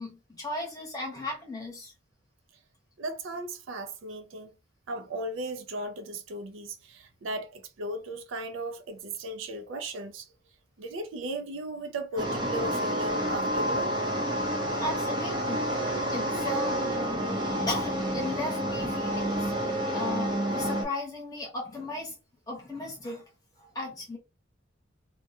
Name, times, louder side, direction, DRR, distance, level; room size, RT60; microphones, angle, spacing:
voice 1, 0.0-1.9 14.8-16.8 17.7-22.1 22.5-23.2 23.6-24.2, left 1 dB, 20° left, 0.9 m, -36 dB
voice 2, 3.0-4.5 4.9-10.3 10.8-13.9, right 1 dB, 70° right, 0.4 m, -36 dB
sound 1, 12.2-20.8, equal, 20° right, 0.6 m, -29 dB
2.3 x 2.1 x 2.8 m
head